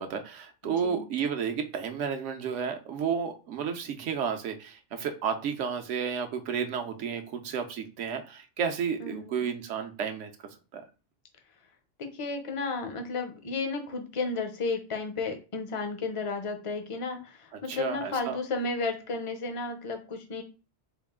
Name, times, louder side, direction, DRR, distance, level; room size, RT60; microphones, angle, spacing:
voice 1, 0.0-10.8 17.7-18.4, right 7 dB, 75° right, 5 dB, 0.9 m, -32 dB
voice 2, 0.6-1.1 9.0-9.4 12.0-20.4, left 3 dB, 40° left, 5 dB, 0.4 m, -33 dB
3.7 x 2.3 x 3.5 m, 0.33 s
omnidirectional pair, 1.3 m